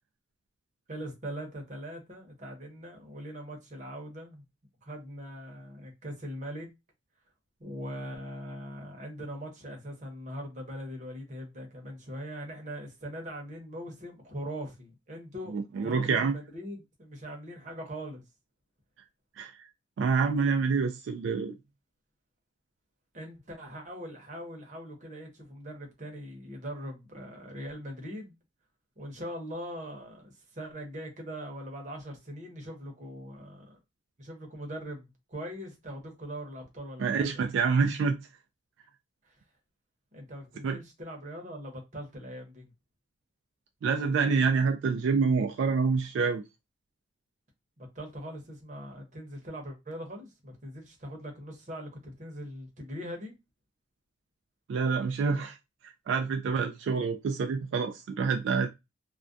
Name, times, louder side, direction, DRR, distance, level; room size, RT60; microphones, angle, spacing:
voice 1, 0.9-4.4 4.8-6.7 7.6-18.3 23.1-28.3 29.0-33.8 34.2-37.5 39.2-39.4 40.1-42.7 47.8-53.4, equal, 40° right, 0.8 m, -41 dB
voice 2, 15.5-16.4 19.4-19.6 20.0-21.5 37.0-38.2 40.6-40.8 43.8-46.4 54.7-55.6 55.8-58.7, right 5 dB, 75° right, 0.3 m, -27 dB
2.3 x 2.1 x 2.5 m
head